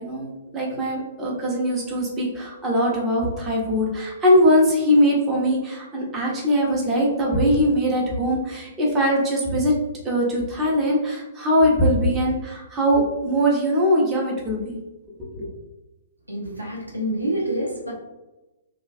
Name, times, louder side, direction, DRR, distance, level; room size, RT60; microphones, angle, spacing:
voice 1, 0.0-9.7 10.0-14.8 15.3-15.5, equal, 20° right, -3 dB, 0.7 m, -21 dB
voice 2, 16.3-17.9, right 1 dB, 85° right, -3 dB, 0.9 m, -27 dB
2.9 x 2.3 x 2.5 m, 1.0 s
figure-of-eight pair, 115°, 0 cm